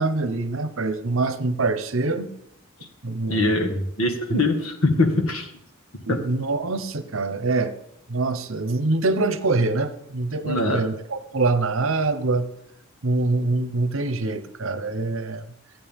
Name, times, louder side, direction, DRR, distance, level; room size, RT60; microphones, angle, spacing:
voice 1, 0.0-2.3 3.0-3.4 4.3-4.4 6.0-7.7 8.1-12.5 13.0-15.4, right 3 dB, 70° right, 10 dB, 0.9 m, -24 dB
voice 2, 3.3-5.5 6.1-6.2 10.4-10.8, left 2 dB, 85° left, 4 dB, 1.8 m, -22 dB
14.5 x 9.3 x 3.6 m, 0.77 s
head